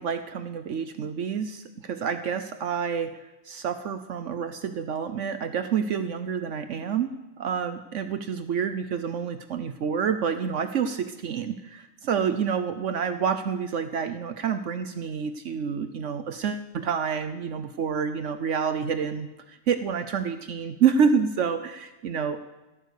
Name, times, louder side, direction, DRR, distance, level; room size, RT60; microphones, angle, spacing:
voice 1, 0.0-3.1 3.4-22.4, right 7 dB, 70° right, 9 dB, 1.1 m, -28 dB
16.5 x 9.1 x 6.5 m, 1.1 s
omnidirectional pair, 1.4 m